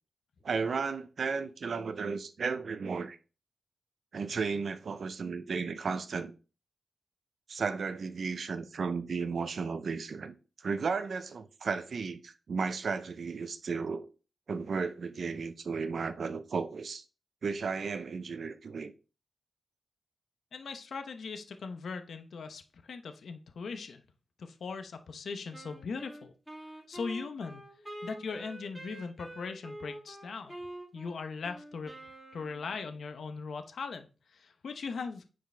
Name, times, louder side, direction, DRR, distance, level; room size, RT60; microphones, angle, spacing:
voice 1, 0.4-3.2 4.1-6.3 7.5-14.1 14.5-17.0 17.4-18.9, right 5 dB, 60° right, 0.7 m, -34 dB
voice 2, 20.5-24.0 24.4-26.3 26.9-27.6 28.0-30.5 30.9-32.0 32.3-35.2, left 5 dB, 70° left, 1.0 m, -39 dB
Wind instrument woodwind instrument, 25.5-33.0, right 1 dB, 5° right, 2.7 m, -46 dB
9.5 x 5.1 x 3.5 m
wide cardioid pair, 105°, 0 cm